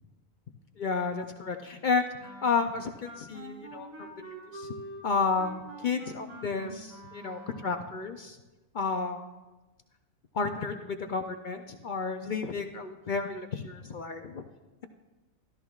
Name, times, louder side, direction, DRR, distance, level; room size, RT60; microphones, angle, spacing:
voice 1, 0.8-4.7 5.0-8.4 8.7-9.3 10.3-14.4, left 4 dB, 60° left, 6 dB, 0.5 m, -32 dB
Wind instrument woodwind instrument, 2.2-7.9, right 1 dB, 70° right, 2.2 m, -45 dB
13.0 x 13.0 x 2.4 m, 1.1 s
omnidirectional pair, 1.5 m